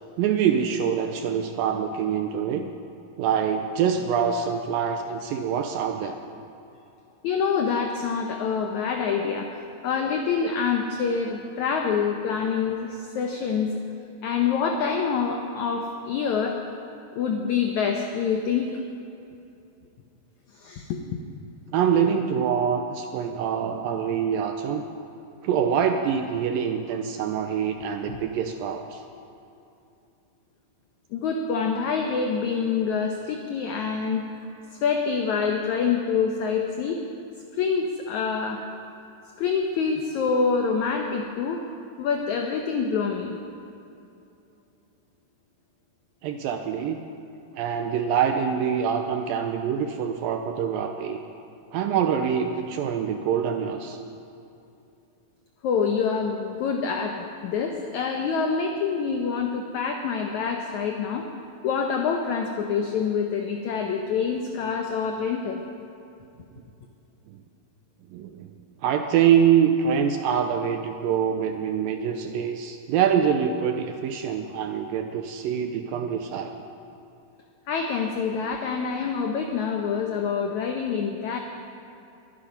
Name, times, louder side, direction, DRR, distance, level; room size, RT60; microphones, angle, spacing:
voice 1, 0.2-2.7 3.2-6.2 21.7-24.8 25.4-29.0 46.2-47.0 47.5-51.2 51.7-54.0 68.1-68.5 68.8-76.5, right 8 dB, 80° right, 6 dB, 2.1 m, -25 dB
voice 2, 7.2-13.7 14.2-16.6 17.1-18.8 20.5-21.2 28.1-28.2 31.1-34.2 34.7-37.0 37.5-38.6 39.4-41.7 42.0-43.4 55.6-61.3 61.6-65.6 77.7-81.4, left 6 dB, 90° left, 3 dB, 1.6 m, -26 dB
22.0 x 9.1 x 5.3 m, 2.7 s
omnidirectional pair, 4.5 m